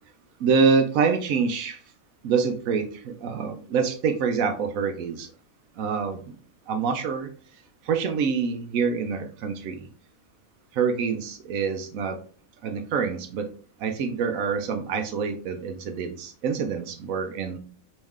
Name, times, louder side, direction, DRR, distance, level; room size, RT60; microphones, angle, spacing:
voice 1, 0.4-1.8 2.2-5.3 5.8-6.2 6.7-7.3 7.8-9.9 10.7-12.2 12.6-13.5 13.8-17.6, right 5 dB, 85° right, 6 dB, 1.0 m, -26 dB
3.6 x 3.1 x 3.0 m, 0.42 s
omnidirectional pair, 1.4 m